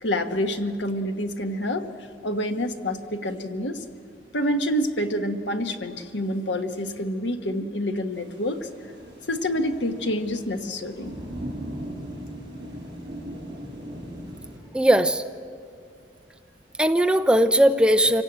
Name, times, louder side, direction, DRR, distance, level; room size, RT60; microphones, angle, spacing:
voice 1, 0.0-1.9 2.2-3.8 4.3-8.7 9.3-11.1, equal, 90° left, 7 dB, 1.4 m, -27 dB
Thunder / Rain, 8.1-14.6, equal, 25° right, 7.1 m, -39 dB
voice 2, 14.7-15.2 16.8-18.2, right 1 dB, 5° right, 8 dB, 0.6 m, -18 dB
26.0 x 17.5 x 8.1 m, 2.4 s
head